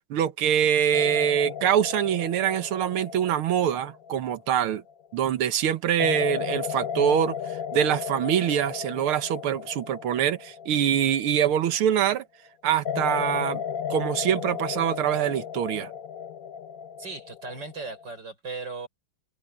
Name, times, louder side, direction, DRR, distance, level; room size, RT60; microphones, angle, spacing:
voice 1, 0.1-4.8 5.1-12.2 12.6-13.6 13.9-15.9, right 9 dB, 80° right, 2.0 m, -24 dB
sound 1, 0.9-5.1 6.0-12.0 12.8-18.2, left 8 dB, 65° left, 0.9 m, -34 dB
voice 2, 17.0-18.9, right 3 dB, 55° right, 6.8 m, -37 dB
omnidirectional pair, 2.3 m